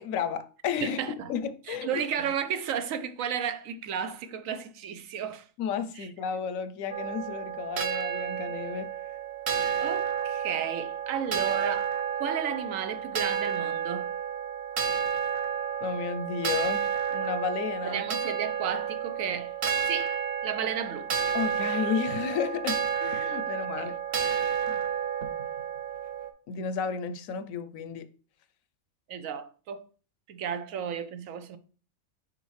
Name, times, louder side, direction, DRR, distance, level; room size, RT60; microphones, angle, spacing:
voice 1, 0.0-1.0 1.3-2.1 5.6-9.0 15.8-18.1 21.3-23.9 24.7-24.8 26.5-28.1, left 7 dB, 80° left, 1.0 m, -32 dB
voice 2, 0.8-1.3 1.7-5.5 6.0-6.1 9.8-11.9 12.2-14.1 17.8-19.5 19.8-21.1 23.8-23.9 29.1-29.9 30.3-31.6, right 8 dB, 80° right, 1.1 m, -33 dB
sound 1, 6.9-26.3, right 8 dB, 50° right, 0.9 m, -31 dB
6.2 x 5.0 x 3.2 m
omnidirectional pair, 1.4 m